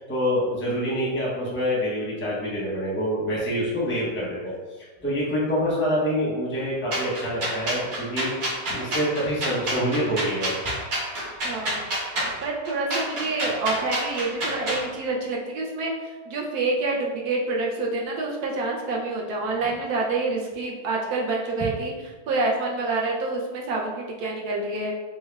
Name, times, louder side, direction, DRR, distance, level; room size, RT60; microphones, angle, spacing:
voice 1, 0.0-10.5, equal, 10° left, -5 dB, 0.5 m, -26 dB
sound 1, 6.9-14.8, right 1 dB, 50° right, 1.6 m, -28 dB
voice 2, 11.4-11.8 12.4-21.9 22.3-24.9, right 3 dB, 70° right, -1 dB, 0.9 m, -27 dB
6.1 x 2.2 x 2.3 m, 1.3 s
omnidirectional pair, 2.0 m